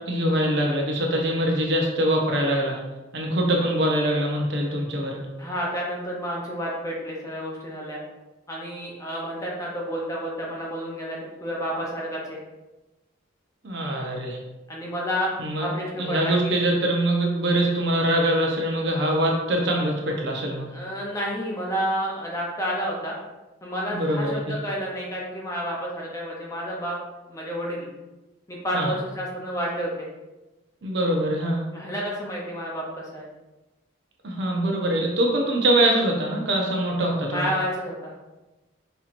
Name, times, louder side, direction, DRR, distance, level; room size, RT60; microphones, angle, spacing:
voice 1, 0.0-2.8 3.1-5.2 13.6-14.4 15.4-15.7 16.0-20.7 23.9-24.6 28.7-28.9 30.8-31.6 34.2-37.5, right 1 dB, 55° right, 0 dB, 0.7 m, -23 dB
voice 2, 5.4-8.0 8.5-12.4 14.7-16.5 20.7-23.2 23.6-27.0 27.3-27.9 28.5-30.1 31.7-33.3 37.3-38.2, equal, 15° left, -3 dB, 0.6 m, -30 dB
5.4 x 2.9 x 2.5 m, 1.1 s
head